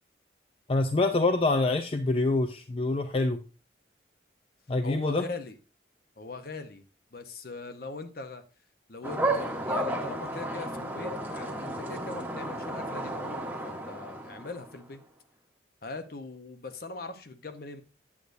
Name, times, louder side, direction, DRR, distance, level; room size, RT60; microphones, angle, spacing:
voice 1, 0.7-3.4 4.7-5.3, left 2 dB, 30° left, 0.4 m, -26 dB
voice 2, 4.8-5.6 6.2-6.8 7.1-8.4 8.9-15.0 15.8-17.8, left 3 dB, 50° left, 0.8 m, -41 dB
sound 1, 9.0-14.8, right 1 dB, 10° right, 1.0 m, -33 dB
8.4 x 8.1 x 2.6 m
head